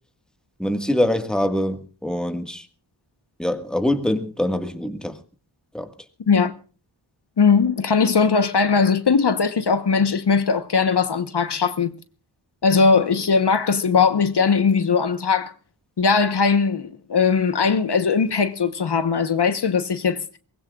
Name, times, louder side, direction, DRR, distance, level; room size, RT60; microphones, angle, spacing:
voice 1, 0.6-2.6 3.4-5.1 5.7-5.9, left 1 dB, ahead, 1.7 m, -24 dB
voice 2, 7.4-11.9 12.6-15.5 16.0-20.4, left 5 dB, 60° left, 1.1 m, -19 dB
23.0 x 20.0 x 2.4 m
wide cardioid pair, 105°, 46 cm